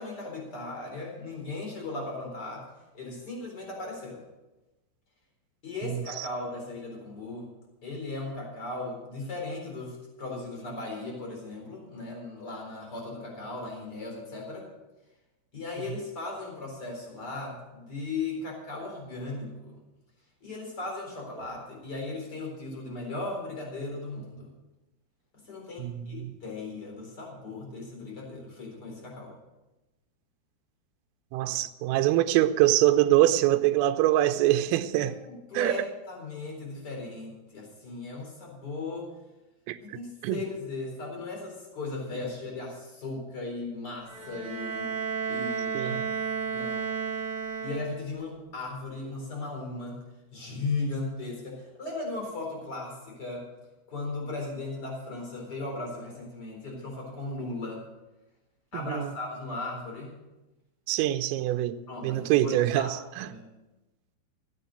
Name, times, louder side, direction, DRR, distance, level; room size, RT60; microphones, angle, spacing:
voice 1, 0.0-2.7 2.9-4.2 5.6-7.5 7.8-14.7 15.5-19.8 20.4-24.5 25.5-29.3 35.0-39.1 39.8-44.9 45.3-46.0 46.5-46.9 47.5-50.0 50.3-53.5 53.9-57.8 58.7-60.2 61.9-63.4, left 3 dB, 20° left, 3.9 m, -37 dB
voice 2, 5.8-6.3 25.8-26.3 31.3-35.2 35.6-35.8 39.7-40.5 45.8-46.1 58.7-59.1 60.9-63.3, right 14 dB, 90° right, 3.4 m, -25 dB
Bowed string instrument, 44.1-48.2, right 6 dB, 55° right, 1.3 m, -32 dB
15.0 x 9.2 x 6.4 m
omnidirectional pair, 5.8 m